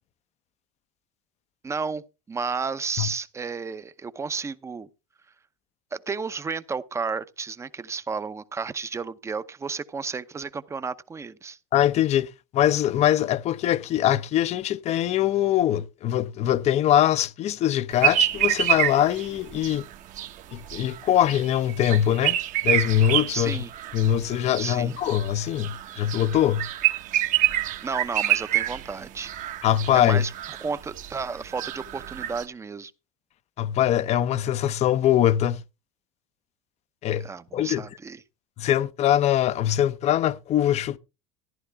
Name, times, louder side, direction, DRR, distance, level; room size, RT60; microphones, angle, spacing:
voice 1, 1.6-2.0 2.3-4.9 5.9-11.6 23.3-23.7 24.6-24.9 27.8-29.3 29.9-30.3 30.6-32.9 37.2-38.2, right 5 dB, 15° right, 0.8 m, -32 dB
voice 2, 11.7-19.8 20.5-22.4 22.6-23.6 23.9-26.7 29.6-30.2 33.6-35.6 37.0-37.3 37.5-37.8 38.6-41.0, left 11 dB, 40° left, 0.7 m, -22 dB
sound 1, 18.0-32.4, right 13 dB, 50° right, 1.2 m, -28 dB
14.0 x 10.5 x 3.5 m
supercardioid pair, 130°, 17 cm